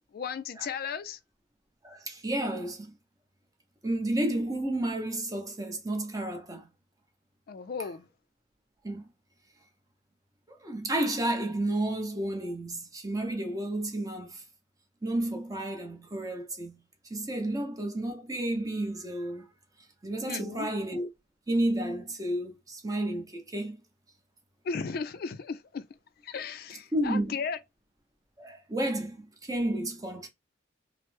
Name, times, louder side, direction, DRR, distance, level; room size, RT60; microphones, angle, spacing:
voice 1, 0.1-1.2 7.5-8.1 20.3-20.7 24.6-25.9 26.2-27.6, left 5 dB, 50° left, 0.3 m, -35 dB
voice 2, 1.8-3.0 3.8-6.7 8.8-9.1 10.6-14.4 15.0-16.8 17.1-19.5 20.0-21.1 21.5-23.8 26.9-27.4 28.4-30.3, right 1 dB, 20° right, 0.7 m, -31 dB
3.1 x 2.0 x 3.1 m
head